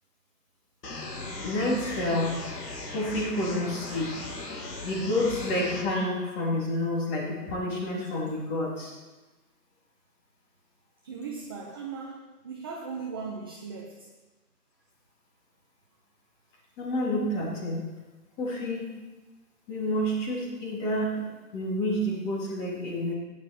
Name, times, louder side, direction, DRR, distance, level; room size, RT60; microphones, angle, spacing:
sound 1, 0.8-5.8, left 2 dB, 75° left, 2.9 m, -38 dB
voice 1, 1.4-2.5 2.9-4.3 4.8-8.9 16.8-17.9 18.4-18.9 19.7-23.1, left 1 dB, 20° left, -3 dB, 3.2 m, -29 dB
voice 2, 11.0-14.1, right 5 dB, 15° right, -1 dB, 0.6 m, -38 dB
15.5 x 10.0 x 4.5 m, 1.2 s
hypercardioid pair, 145°, 48 cm